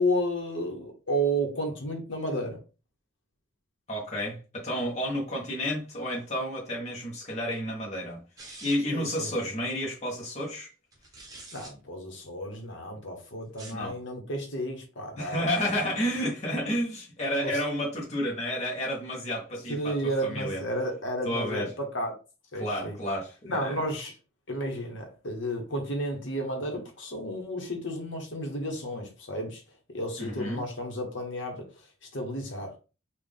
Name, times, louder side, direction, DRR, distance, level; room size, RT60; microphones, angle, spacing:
voice 1, 0.0-2.6 8.9-9.3 11.5-15.7 17.4-17.6 19.7-22.1 22.5-22.9 23.4-24.1 24.5-29.6 29.9-31.7 32.1-32.8, equal, 60° left, 1.1 m, -32 dB
voice 2, 3.9-8.2 8.6-10.7 13.7-13.9 15.2-20.6 21.2-21.7 22.5-23.9 30.2-30.6, equal, 30° left, 1.1 m, -31 dB
sound 1, 8.4-9.0 10.9-11.7 13.4-13.9, right 2 dB, 15° right, 0.9 m, -46 dB
4.1 x 2.4 x 3.5 m
head